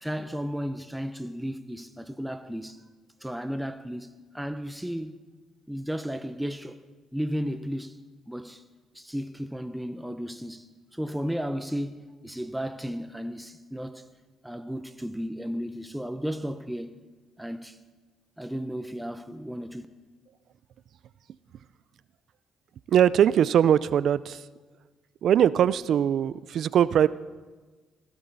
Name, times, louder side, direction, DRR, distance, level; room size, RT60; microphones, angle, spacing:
voice 1, 0.0-2.8 3.2-5.2 5.7-6.8 7.1-8.0 8.3-8.6 8.9-14.1 14.4-17.0 17.4-17.8 18.4-19.9, equal, 5° right, 0.7 m, -34 dB
voice 2, 22.9-24.4 25.2-27.1, right 9 dB, 65° right, 0.5 m, -21 dB
16.5 x 16.5 x 4.0 m
cardioid pair, 90°, 0 cm